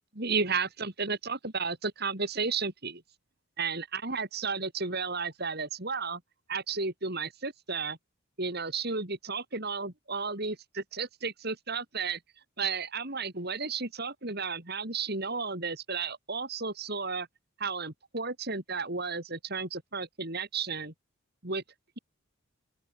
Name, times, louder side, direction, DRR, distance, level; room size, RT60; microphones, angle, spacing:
voice 1, 0.2-3.0 3.6-6.2 6.5-8.0 8.4-12.2 12.6-17.3 17.6-20.9 21.4-21.6, right 4 dB, 45° right, 3.4 m, -33 dB
open air
head